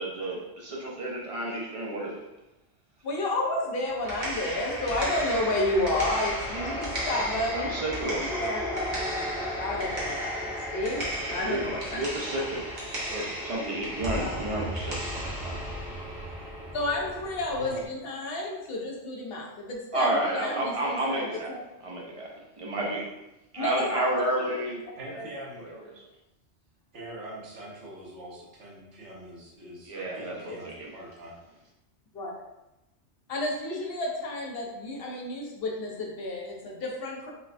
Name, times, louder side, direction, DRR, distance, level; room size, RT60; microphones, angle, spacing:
voice 1, 0.0-2.2 7.5-8.3 11.4-15.6 19.9-21.5 21.8-22.3 22.6-23.1 23.5-25.2 25.6-25.8 29.9-30.9, right 1 dB, 60° right, -2 dB, 0.3 m, -31 dB
voice 2, 3.0-7.7 8.2-8.6 9.6-12.2 14.2-14.3 16.7-21.6 23.6-24.5 25.2-25.3 30.5-30.6 32.1-32.3 33.3-37.3, left 1 dB, 60° left, -1 dB, 0.9 m, -31 dB
sound 1, 3.9-17.8, equal, 45° right, 0.9 m, -34 dB
voice 3, 25.0-25.7 26.9-31.4, right 1 dB, 75° right, -4 dB, 1.2 m, -43 dB
4.0 x 2.2 x 2.4 m, 0.95 s
omnidirectional pair, 1.2 m